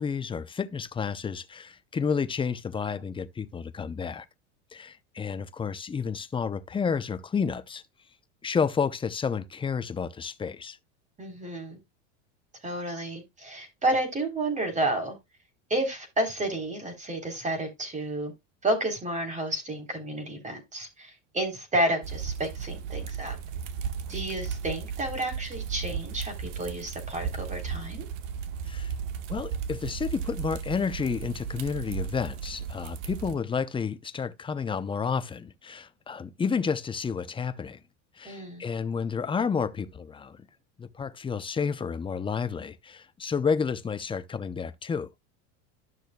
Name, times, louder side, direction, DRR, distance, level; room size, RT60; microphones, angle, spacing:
voice 1, 0.0-4.3 4.7-7.8 8.4-10.8 28.7-28.9 29.3-37.8 38.2-40.4 40.8-45.1, left 6 dB, 15° left, 0.6 m, -30 dB
voice 2, 11.2-11.8 12.6-15.2 15.7-18.3 18.6-23.4 24.1-28.1 38.3-38.6, right 1 dB, 20° right, 3.5 m, -31 dB
sound 1, 22.0-33.4, right 7 dB, 70° right, 1.3 m, -35 dB
12.5 x 6.3 x 2.3 m
supercardioid pair, 115°, 37 cm